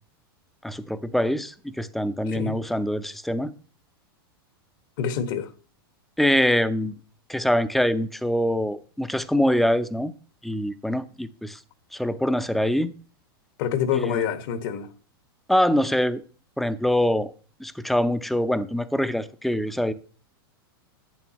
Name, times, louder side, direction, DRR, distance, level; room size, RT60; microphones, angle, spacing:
voice 1, 0.6-3.5 6.2-6.9 7.3-10.1 10.4-11.6 11.9-12.9 13.9-14.2 15.5-16.2 16.6-17.3 17.6-19.9, equal, ahead, 0.7 m, -24 dB
voice 2, 2.3-2.6 5.0-5.5 13.6-14.9, left 8 dB, 60° left, 1.6 m, -26 dB
11.0 x 8.4 x 3.0 m
hypercardioid pair, 125°, 13 cm